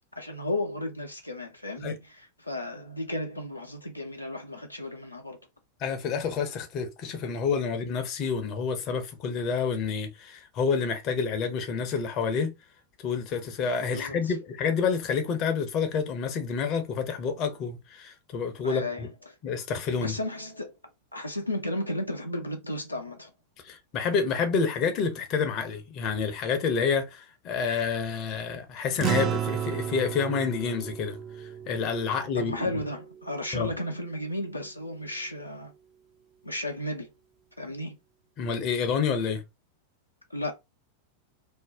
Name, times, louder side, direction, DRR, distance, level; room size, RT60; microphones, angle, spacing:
voice 1, 0.2-5.4 13.9-14.3 18.6-19.3 20.0-20.7 21.1-23.3 32.3-35.7 36.4-37.1 37.6-38.0 40.3-40.5, left 1 dB, 85° left, 0.5 m, -34 dB
voice 2, 5.8-12.5 13.0-19.1 19.4-20.1 23.6-31.2 31.7-32.5 33.5-33.7 38.4-39.4, left 5 dB, 35° left, 0.6 m, -28 dB
sound 1, 29.0-33.7, right 9 dB, 30° right, 0.4 m, -33 dB
2.6 x 2.1 x 3.4 m
figure-of-eight pair, 90°, 0 cm